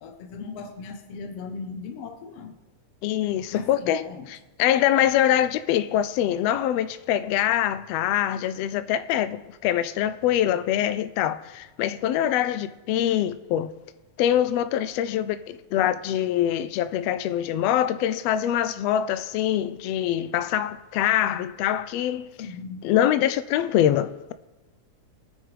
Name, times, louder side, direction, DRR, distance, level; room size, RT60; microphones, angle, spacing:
voice 1, 0.0-2.6 3.5-4.3 22.4-22.9, left 5 dB, 65° left, 1.8 m, -38 dB
voice 2, 3.0-13.7 14.2-22.3 22.8-24.3, left 11 dB, 85° left, 1.5 m, -24 dB
23.0 x 9.6 x 3.4 m
omnidirectional pair, 3.5 m